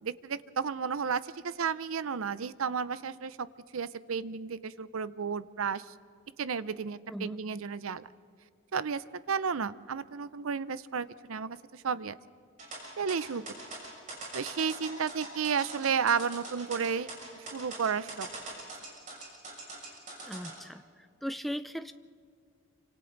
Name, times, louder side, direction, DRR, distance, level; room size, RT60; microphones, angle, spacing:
voice 1, 0.0-3.5 3.7-5.9 6.4-8.1 8.7-12.2 13.0-13.4 14.3-17.1 17.5-18.3, right 6 dB, 80° right, 16 dB, 0.6 m, -32 dB
sound 1, 12.6-20.5, right 2 dB, 35° right, 6.7 m, -42 dB
voice 2, 20.3-20.8 21.2-21.9, equal, ahead, 11 dB, 0.5 m, -37 dB
28.0 x 25.5 x 4.0 m, 2.2 s
head